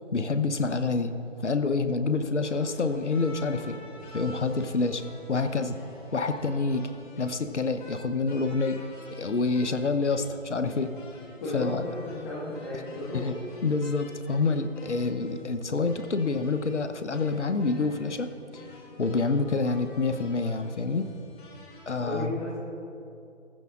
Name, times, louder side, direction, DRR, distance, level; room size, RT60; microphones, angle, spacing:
voice 1, 0.1-3.7 4.1-5.0 5.3-5.8 6.1-6.9 7.2-8.8 9.2-10.9 11.5-11.9 13.1-13.4 13.6-18.6 19.0-21.0 21.9-22.4, left 3 dB, 70° left, 9 dB, 1.0 m, -27 dB
sound 1, 2.4-21.9, left 2 dB, 40° left, 3.5 m, -48 dB
voice 2, 11.4-13.3 22.0-22.5, left 2 dB, 20° left, -8 dB, 1.8 m, -34 dB
18.0 x 15.0 x 2.5 m, 2.7 s
figure-of-eight pair, 140°, 37 cm